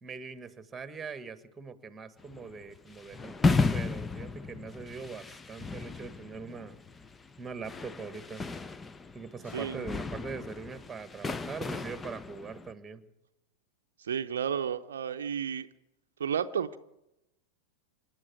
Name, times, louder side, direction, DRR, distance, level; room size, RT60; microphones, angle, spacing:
voice 1, 0.0-6.8 7.4-8.4 9.1-13.0, right 5 dB, 15° right, 12 dB, 1.6 m, -42 dB
sound 1, 2.2-12.7, left 4 dB, 15° left, 0.7 m, -34 dB
voice 2, 14.0-15.7 16.2-16.8, right 8 dB, 65° right, 8 dB, 0.7 m, -32 dB
27.0 x 11.0 x 9.5 m, 0.91 s
figure-of-eight pair, 90°, 0 cm